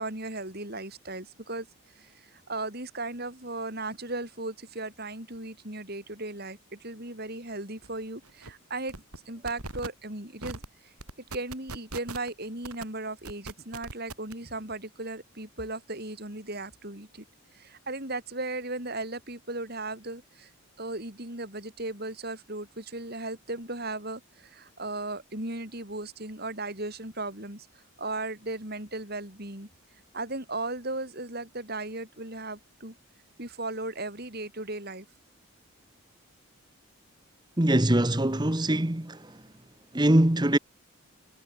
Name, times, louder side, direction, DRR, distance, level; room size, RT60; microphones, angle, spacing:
voice 1, 0.0-1.7 1.9-8.9 9.3-10.9 11.3-17.3 17.5-20.5 20.8-29.7 30.1-33.0 33.4-35.1, right 2 dB, 45° right, 5.2 m, -36 dB
sound 1, 7.8-7.9 8.2-8.5 8.9-9.2 9.5-9.9 10.4-10.7 11.0-12.3 12.6-12.8 13.3-14.3, right 3 dB, 90° right, 5.4 m, -39 dB
voice 2, 37.6-39.3 39.9-40.6, right 1 dB, 20° right, 1.1 m, -23 dB
head